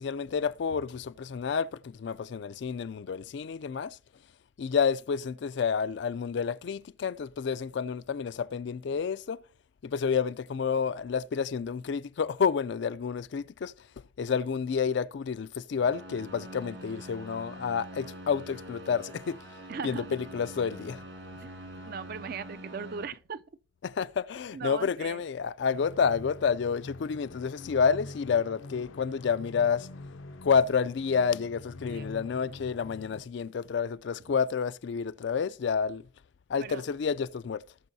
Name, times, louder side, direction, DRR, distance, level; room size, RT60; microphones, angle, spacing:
voice 1, 0.0-4.0 4.6-9.4 9.8-13.7 14.2-19.4 19.8-21.0 23.8-29.9 30.4-36.0 36.5-37.6, left 6 dB, 60° left, 0.3 m, -29 dB
sound 1, 15.8-23.0, right 1 dB, 70° right, 2.6 m, -45 dB
voice 2, 19.7-20.2 21.4-21.5 21.8-23.4 24.5-25.2 31.9-32.1 36.6-36.8, right 5 dB, 50° right, 0.4 m, -38 dB
sound 2, 25.7-33.2, left 2 dB, 85° left, 0.7 m, -45 dB
18.0 x 6.2 x 2.7 m
head